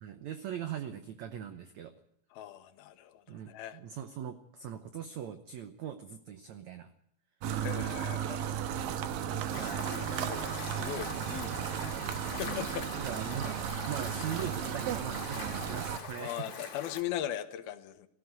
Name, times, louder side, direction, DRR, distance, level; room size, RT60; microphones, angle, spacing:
voice 1, 0.0-1.9 3.3-6.9 9.5-10.0 12.4-12.7 13.0-13.6 13.9-16.7, right 9 dB, 90° right, 9 dB, 1.5 m, -41 dB
voice 2, 2.3-3.8 7.6-8.5 9.6-12.1 12.4-12.9 16.2-18.1, left 11 dB, 75° left, 10 dB, 2.8 m, -40 dB
sound 1, 7.4-16.0, right 9 dB, 70° right, 2.7 m, -35 dB
sound 2, 9.5-17.0, left 6 dB, 50° left, 2.6 m, -44 dB
18.5 x 15.0 x 9.4 m, 0.72 s
omnidirectional pair, 4.6 m